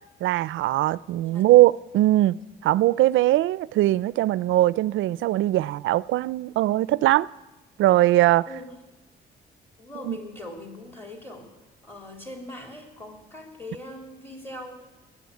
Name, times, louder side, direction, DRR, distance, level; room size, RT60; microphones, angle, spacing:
voice 1, 0.2-2.4 2.6-7.3 7.8-8.5 10.1-10.2, right 15 dB, 80° right, 0.4 m, -20 dB
voice 2, 1.1-1.5 8.5-8.7 9.8-11.6 11.8-14.7, left 1 dB, 10° left, 3.7 m, -41 dB
20.0 x 8.4 x 8.4 m
cardioid pair, 90°, 20 cm